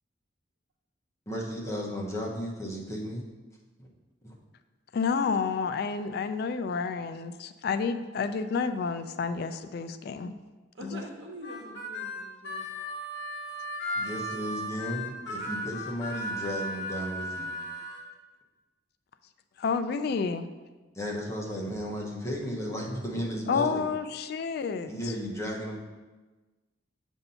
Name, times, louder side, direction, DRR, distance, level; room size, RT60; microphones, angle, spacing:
voice 1, 1.3-3.2 3.8-3.9 4.2-4.4 13.9-17.5 20.9-23.8 24.9-25.8, equal, 15° left, -3 dB, 1.0 m, -34 dB
voice 2, 4.9-10.3 10.8-11.0 19.6-20.4 23.5-25.1, left 5 dB, 60° left, 10 dB, 0.3 m, -30 dB
voice 3, 10.7-12.7, equal, 90° right, 1 dB, 1.0 m, -44 dB
Harmonica, 11.4-18.0, equal, 80° left, 0.9 m, -36 dB
6.9 x 2.7 x 5.5 m, 1.2 s
head